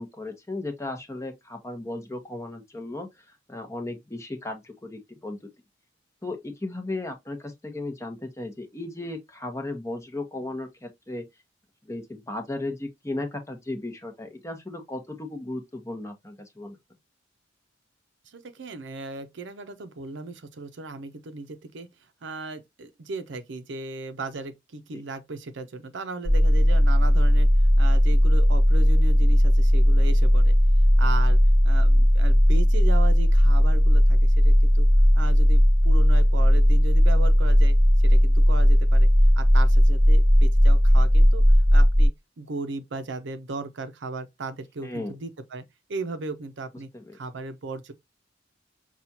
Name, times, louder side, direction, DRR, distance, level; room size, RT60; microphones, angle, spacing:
voice 1, 0.0-5.5 6.2-11.2 11.8-16.8 24.9-25.0 44.8-45.1 46.9-47.2, left 2 dB, 15° left, 0.9 m, -35 dB
voice 2, 18.3-21.9 22.2-27.5 27.8-30.6 31.0-31.4 31.6-34.9 35.2-37.8 38.0-39.1 39.4-41.4 41.7-45.6 45.9-47.9, right 3 dB, 70° right, 0.6 m, -36 dB
sound 1, 26.2-42.1, equal, 45° right, 0.9 m, -17 dB
5.7 x 2.4 x 2.7 m
head